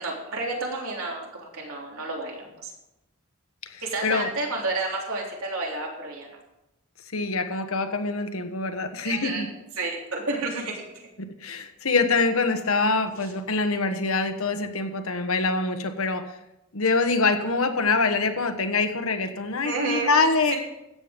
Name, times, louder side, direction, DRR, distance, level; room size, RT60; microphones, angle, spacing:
voice 1, 0.0-2.7 3.8-6.3 9.0-9.4 9.8-11.1 19.6-20.1 20.5-20.6, right 2 dB, 80° right, -1 dB, 3.4 m, -30 dB
voice 2, 3.7-4.3 7.1-9.5 11.4-16.3 16.7-20.6, left 3 dB, 75° left, 7 dB, 1.3 m, -25 dB
14.0 x 8.6 x 5.2 m, 0.91 s
head